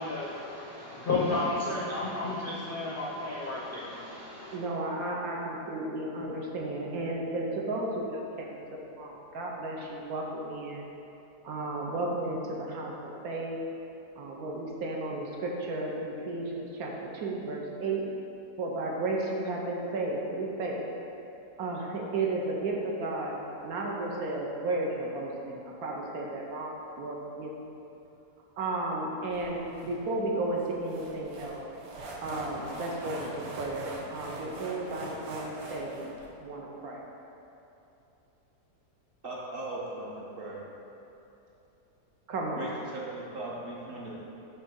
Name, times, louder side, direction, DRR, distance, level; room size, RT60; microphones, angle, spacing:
voice 1, 0.0-4.6, left 2 dB, 55° left, -6 dB, 0.5 m, -32 dB
voice 2, 4.5-8.6 9.0-10.8 11.4-12.9 13.2-13.6 14.2-18.0 18.6-20.8 21.6-23.3 23.6-27.5 28.6-31.6 32.2-33.3 33.6-36.1 36.4-37.0 42.3-42.6, right 2 dB, 65° right, -2 dB, 1.1 m, -33 dB
sound 1, 29.3-36.3, right 2 dB, 85° right, 1.4 m, -43 dB
voice 3, 39.2-40.6 42.5-44.2, right 2 dB, 45° right, -5 dB, 0.8 m, -38 dB
6.2 x 3.3 x 5.2 m, 2.9 s
omnidirectional pair, 1.8 m